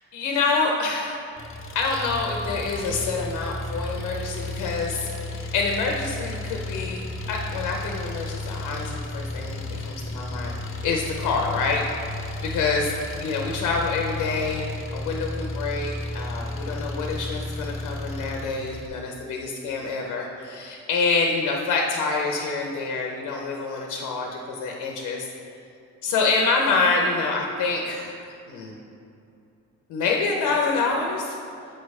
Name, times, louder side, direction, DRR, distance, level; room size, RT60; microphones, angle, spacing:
voice 1, 0.1-1.2 1.7-10.5 10.8-11.9 12.4-12.9 13.2-14.6 14.9-25.3 26.0-28.7 29.9-31.4, left 4 dB, 85° left, 1 dB, 0.7 m, -26 dB
Engine, 1.4-18.9, left 2 dB, 45° left, 0.7 m, -33 dB
7.6 x 3.2 x 4.8 m, 2.6 s
cardioid pair, 90°, 30 cm